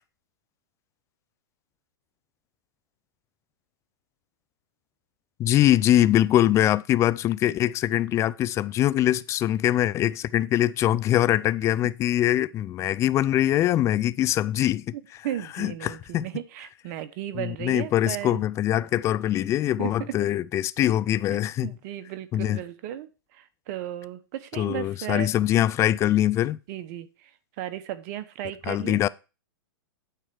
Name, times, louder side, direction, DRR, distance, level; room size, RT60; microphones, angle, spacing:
voice 1, 5.4-15.0 15.6-16.3 17.3-21.7 22.3-22.6 24.6-26.6 28.7-29.1, left 13 dB, 25° left, 0.4 m, -23 dB
voice 2, 15.2-18.4 19.8-20.2 21.3-25.3 26.7-27.3 27.6-29.0, right 12 dB, 45° right, 0.9 m, -35 dB
9.1 x 4.4 x 6.3 m
hypercardioid pair, 120°, 12 cm